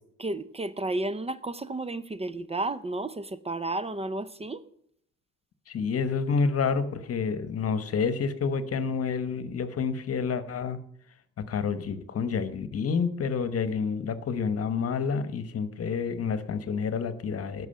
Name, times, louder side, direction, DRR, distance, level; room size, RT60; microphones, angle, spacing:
voice 1, 0.2-4.6, right 2 dB, 20° right, 0.6 m, -32 dB
voice 2, 5.7-10.8 11.5-17.7, left 5 dB, 50° left, 1.1 m, -29 dB
11.0 x 6.2 x 8.8 m
cardioid pair, 90°, 30 cm